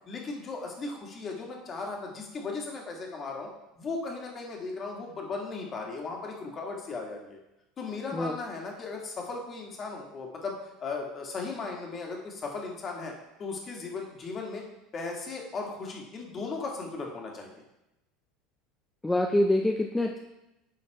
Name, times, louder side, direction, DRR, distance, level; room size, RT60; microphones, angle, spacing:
voice 1, 0.1-3.5 3.8-7.4 7.8-10.5 10.8-13.1 13.4-14.6 14.9-17.5, left 4 dB, 35° left, 0 dB, 1.8 m, -36 dB
voice 2, 19.0-20.2, left 1 dB, 10° left, 3 dB, 0.5 m, -25 dB
9.5 x 4.1 x 4.5 m, 0.95 s
figure-of-eight pair, 70°, 0 cm